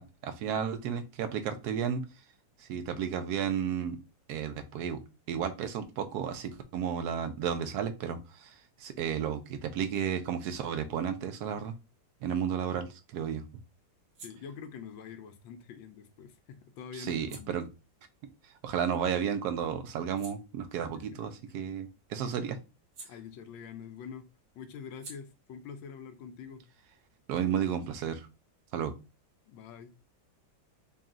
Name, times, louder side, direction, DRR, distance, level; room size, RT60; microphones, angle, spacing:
voice 1, 0.0-2.0 2.6-4.0 4.3-5.0 5.3-11.7 12.2-13.4 16.9-17.7 18.4-22.6 27.3-28.3 28.7-29.0, right 8 dB, 70° right, 0.9 m, -33 dB
sound 1, 14.0-19.3 19.7-23.9 24.1-27.6, right 3 dB, 55° right, 1.3 m, -57 dB
voice 2, 14.2-17.5 20.9-21.2 23.1-24.3 24.5-26.7 29.4-29.9, left 7 dB, 80° left, 1.4 m, -45 dB
4.1 x 2.3 x 3.7 m
omnidirectional pair, 2.1 m